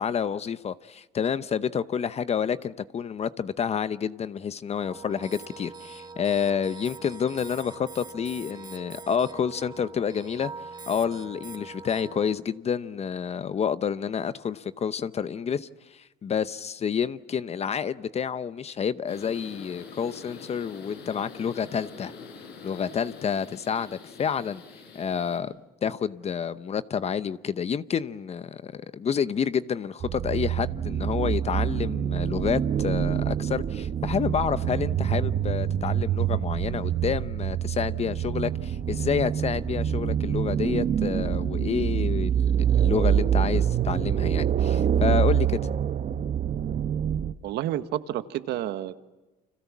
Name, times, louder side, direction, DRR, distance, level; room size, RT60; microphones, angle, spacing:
voice 1, 0.0-10.5 10.9-22.1 22.6-24.6 24.9-25.5 25.8-45.6, left 7 dB, 40° left, 0.8 m, -29 dB
sound 1, 4.8-12.3, right 4 dB, 25° right, 1.7 m, -43 dB
sound 2, 19.1-25.4, left 5 dB, 85° left, 5.5 m, -45 dB
sound 3, 30.0-47.3, right 9 dB, 50° right, 1.0 m, -26 dB
voice 2, 47.4-49.0, right 13 dB, 80° right, 1.4 m, -30 dB
30.0 x 26.0 x 7.3 m
cardioid pair, 110°, 17 cm